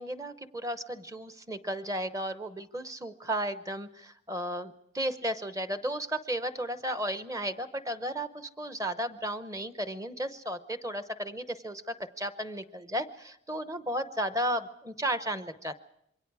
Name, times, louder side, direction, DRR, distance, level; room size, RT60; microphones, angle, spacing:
voice 1, 0.0-15.8, right 1 dB, 15° right, 11 dB, 0.8 m, -34 dB
27.0 x 23.0 x 4.8 m, 0.74 s
head